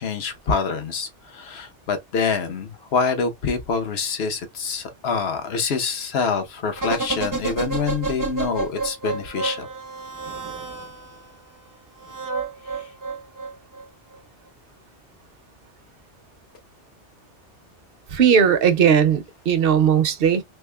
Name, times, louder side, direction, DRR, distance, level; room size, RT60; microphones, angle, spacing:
voice 1, 0.0-9.7 12.7-12.9, left 5 dB, 65° left, 1.1 m, -26 dB
sound 1, 6.8-11.2 12.0-13.8 14.1-14.2, right 4 dB, 25° right, 0.5 m, -30 dB
voice 2, 18.1-20.4, right 7 dB, 60° right, 0.8 m, -18 dB
3.5 x 3.4 x 2.2 m
omnidirectional pair, 1.2 m